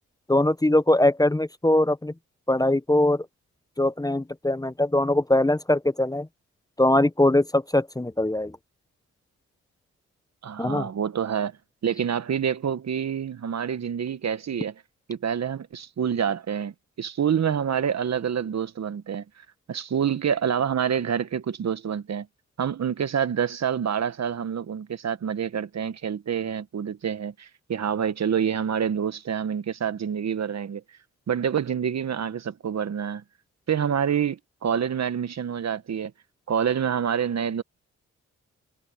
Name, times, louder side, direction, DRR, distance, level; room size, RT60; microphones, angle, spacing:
voice 1, 0.3-2.1 2.5-3.2 3.8-6.3 6.8-8.5 10.6-10.9, left 1 dB, 10° left, 1.0 m, -21 dB
voice 2, 10.4-11.5 11.8-14.7 15.1-22.3 22.6-30.8 31.3-33.2 33.7-36.1 36.5-37.6, right 8 dB, 60° right, 1.5 m, -27 dB
supercardioid pair, 45°, 31 cm